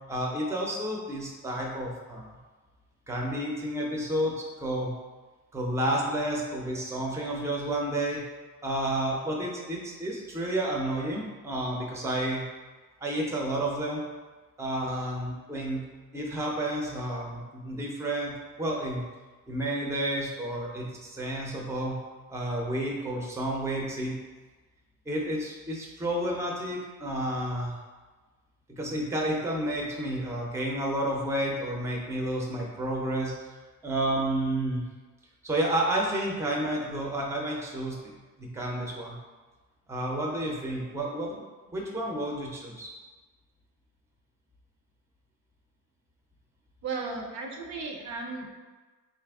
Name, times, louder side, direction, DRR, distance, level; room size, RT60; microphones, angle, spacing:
voice 1, 0.1-2.3 3.1-4.9 5.5-8.2 8.6-12.4 13.0-14.0 14.6-15.8 16.1-19.0 19.5-22.0 22.3-24.2 25.1-27.8 28.7-33.3 33.8-34.8 35.4-38.1 38.4-39.2 39.9-41.4 41.7-42.9, right 1 dB, 10° right, -1 dB, 0.5 m, -30 dB
voice 2, 46.8-48.6, right 4 dB, 55° right, 2 dB, 0.6 m, -35 dB
3.9 x 2.5 x 3.4 m, 1.3 s
cardioid pair, 135°, 34 cm